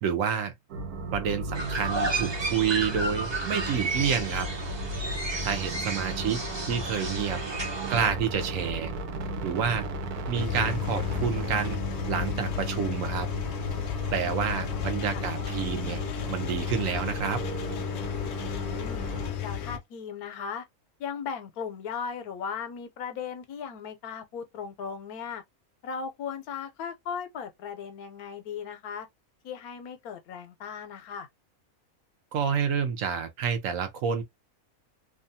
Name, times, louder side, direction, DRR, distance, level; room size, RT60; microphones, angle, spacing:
voice 1, 0.0-0.5 1.1-4.5 5.4-6.4 6.7-7.4 7.9-8.9 9.4-9.8 10.3-13.3 14.1-16.0 16.3-17.4 32.3-34.2, right 7 dB, 70° right, 0.9 m, -29 dB
sound 1, 0.7-19.3, right 1 dB, 90° right, 1.1 m, -35 dB
sound 2, 1.5-8.1, right 2 dB, 25° right, 0.6 m, -33 dB
voice 2, 5.9-6.7 14.5-15.2 18.5-19.1 19.4-20.6 21.0-25.4 25.8-29.1 29.4-31.3, left 6 dB, 85° left, 1.1 m, -37 dB
Engine, 10.4-19.8, left 10 dB, 65° left, 0.7 m, -33 dB
2.7 x 2.3 x 2.6 m
omnidirectional pair, 1.5 m